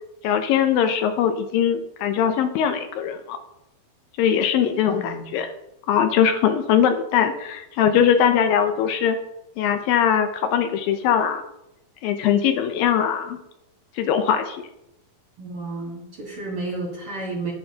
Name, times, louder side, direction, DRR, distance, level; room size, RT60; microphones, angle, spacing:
voice 1, 0.2-3.4 4.2-5.5 5.9-9.2 9.6-11.4 12.0-13.4 14.0-14.6, left 8 dB, 80° left, 7 dB, 2.3 m, -21 dB
voice 2, 4.9-5.4 15.4-17.5, right 2 dB, 50° right, -3 dB, 1.9 m, -32 dB
9.8 x 9.8 x 2.8 m, 0.85 s
omnidirectional pair, 4.3 m